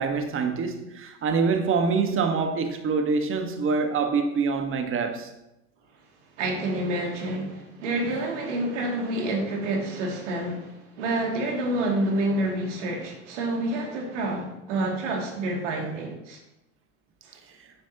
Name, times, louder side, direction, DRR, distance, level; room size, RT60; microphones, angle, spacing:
voice 1, 0.0-5.3, right 5 dB, 35° right, 1.4 m, -25 dB
voice 2, 6.4-16.4 17.2-17.4, right 1 dB, 70° right, 2.6 m, -28 dB
9.7 x 9.3 x 2.9 m
hypercardioid pair, 80°, 37 cm